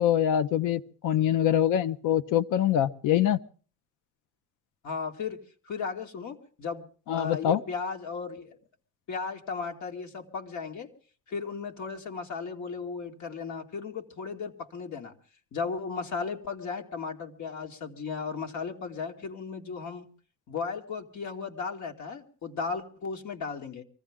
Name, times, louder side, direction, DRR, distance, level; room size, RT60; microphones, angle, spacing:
voice 1, 0.0-3.4 7.1-7.6, left 10 dB, 90° left, 14 dB, 0.8 m, -24 dB
voice 2, 4.8-6.8 7.1-8.6 9.1-10.9 11.3-15.1 15.5-20.1 20.5-23.8, left 5 dB, 70° left, 3 dB, 2.2 m, -35 dB
23.5 x 15.0 x 3.6 m, 0.42 s
cardioid pair, 90°, 30 cm